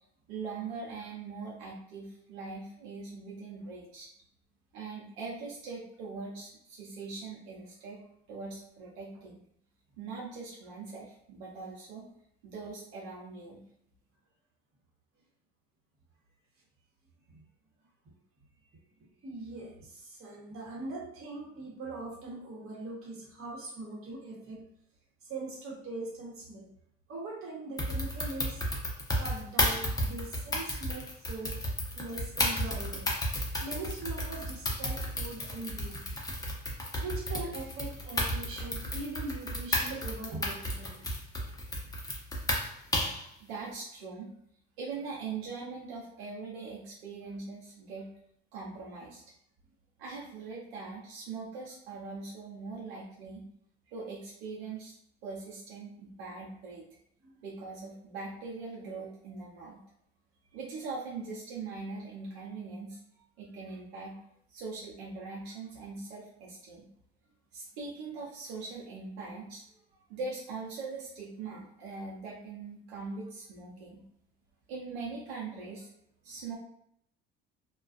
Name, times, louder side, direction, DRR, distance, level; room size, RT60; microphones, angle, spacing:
voice 1, 0.3-4.1 4.7-8.0 8.3-9.4 10.0-12.1 12.4-13.6 43.4-44.3 44.8-48.1 48.5-49.2 50.0-53.4 53.9-56.8 57.4-59.8 60.5-64.2 64.5-66.9 67.5-69.6 70.1-74.0 74.7-75.9 76.2-76.6, right 4 dB, 90° right, -4 dB, 0.7 m, -41 dB
voice 2, 19.2-24.6 25.2-26.7 27.1-28.6 29.2-31.6 32.0-33.1 33.6-36.1 37.0-41.1 41.8-41.9 42.8-42.9 57.2-57.3, right 2 dB, 45° right, -3 dB, 1.1 m, -41 dB
sound 1, 27.8-43.3, left 1 dB, 10° left, 0.6 m, -33 dB
2.3 x 2.3 x 2.4 m, 0.71 s
supercardioid pair, 85°, 31 cm